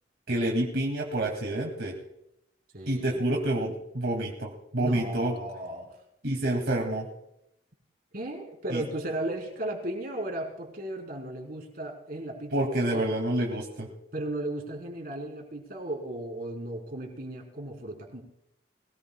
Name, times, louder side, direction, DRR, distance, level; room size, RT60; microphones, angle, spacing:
voice 1, 0.3-1.9 2.9-5.3 6.2-7.1 8.7-8.8 12.5-13.9, right 1 dB, 70° right, -1 dB, 2.4 m, -28 dB
voice 2, 2.7-3.2 4.8-6.0 8.1-13.1 14.1-18.2, right 1 dB, 55° right, 1 dB, 4.1 m, -35 dB
22.5 x 19.0 x 2.3 m, 0.82 s
head